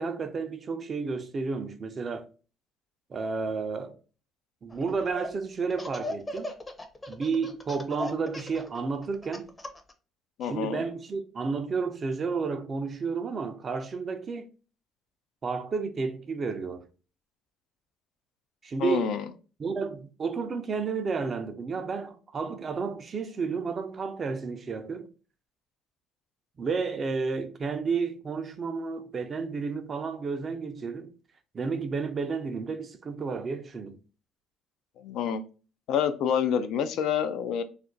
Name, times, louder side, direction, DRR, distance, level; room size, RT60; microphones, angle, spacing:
voice 1, 0.0-2.3 3.1-4.0 4.6-6.5 7.1-9.5 10.4-14.4 15.4-16.9 18.6-19.1 19.6-25.1 26.6-31.1 31.5-34.0, right 4 dB, 40° right, 0.5 m, -31 dB
Laughter, 4.7-5.3 5.7-9.9, left 1 dB, 20° left, 0.6 m, -37 dB
voice 2, 10.4-10.8 18.8-19.2 35.0-35.4 35.9-37.6, left 8 dB, 75° left, 0.3 m, -27 dB
2.4 x 2.1 x 3.7 m
supercardioid pair, 85°, 0 cm